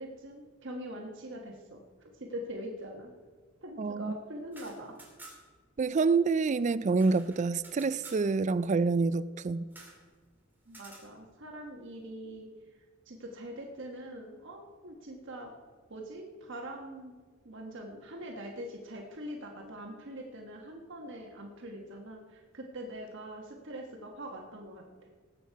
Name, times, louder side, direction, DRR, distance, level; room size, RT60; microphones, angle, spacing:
voice 1, 0.0-3.1 3.6-5.0 10.7-12.5 13.1-15.5 15.9-17.1 17.4-25.1, right 1 dB, 65° right, 1 dB, 1.4 m, -43 dB
voice 2, 3.8-4.2 5.8-9.7, right 4 dB, 35° right, 16 dB, 0.4 m, -27 dB
Venetian Blinds, 4.4-5.6 5.9-6.0 6.3-8.3 9.7-10.0 10.7-11.1, right 2 dB, 10° right, 3.2 m, -52 dB
18.5 x 8.4 x 4.6 m, 1.5 s
head